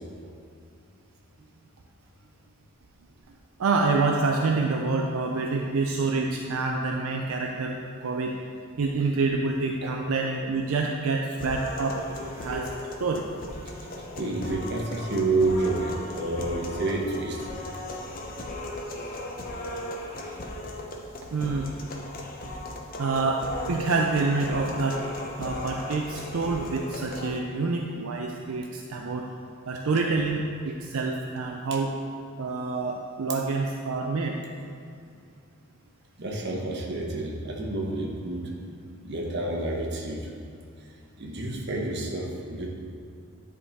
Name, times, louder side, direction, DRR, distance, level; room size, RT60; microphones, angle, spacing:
voice 1, 3.6-8.3 8.8-12.0 12.4-12.7 13.0-13.3 18.1-18.2 18.4-18.5 21.3-21.7 23.0-25.0 25.4-29.3 29.7-32.0 32.4-34.4, right 3 dB, 75° right, 1 dB, 0.4 m, -27 dB
sound 1, 11.4-27.4, left 1 dB, 40° left, 0.7 m, -37 dB
voice 2, 14.1-17.4 36.2-38.4 39.0-40.3 41.2-42.7, right 2 dB, 50° right, 0 dB, 0.9 m, -29 dB
9.7 x 3.6 x 4.1 m, 2.4 s
head